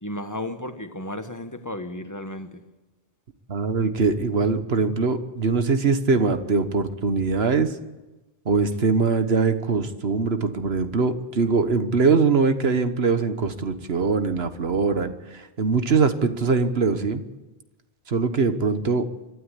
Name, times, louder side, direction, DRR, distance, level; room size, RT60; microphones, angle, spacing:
voice 1, 0.0-2.6, left 1 dB, 20° left, 1.3 m, -33 dB
voice 2, 3.5-7.7 8.4-17.2 18.1-19.1, right 4 dB, 80° right, 1.6 m, -22 dB
24.5 x 12.5 x 9.9 m
omnidirectional pair, 1.0 m